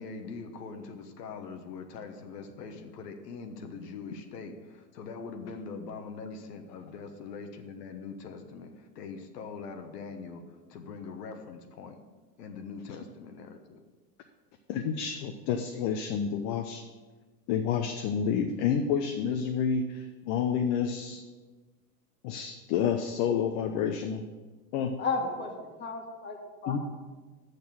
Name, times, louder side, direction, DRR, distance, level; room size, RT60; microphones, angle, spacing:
voice 1, 0.0-10.4 10.7-12.0 12.4-13.8, left 5 dB, 80° left, 5 dB, 1.2 m, -42 dB
voice 2, 14.7-16.8 17.5-21.2 22.2-24.3 24.7-25.0 26.7-26.8, left 7 dB, 45° left, 5 dB, 0.7 m, -29 dB
voice 3, 25.0-26.8, left 4 dB, 20° left, 2 dB, 1.6 m, -33 dB
6.6 x 6.6 x 7.2 m, 1.3 s
hypercardioid pair, 115°, 48 cm